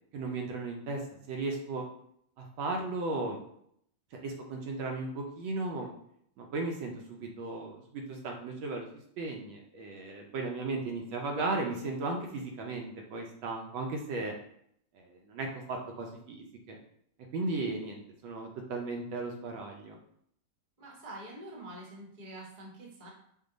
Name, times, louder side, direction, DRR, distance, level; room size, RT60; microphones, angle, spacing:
voice 1, 0.1-1.0 1.3-1.8 2.4-3.4 4.1-5.9 6.4-8.9 9.2-14.3 14.9-16.8 17.3-20.0, right 3 dB, 75° right, 1 dB, 1.4 m, -36 dB
voice 2, 20.8-23.1, right 1 dB, 30° right, -3 dB, 0.8 m, -46 dB
5.1 x 2.3 x 3.9 m, 0.69 s
omnidirectional pair, 2.4 m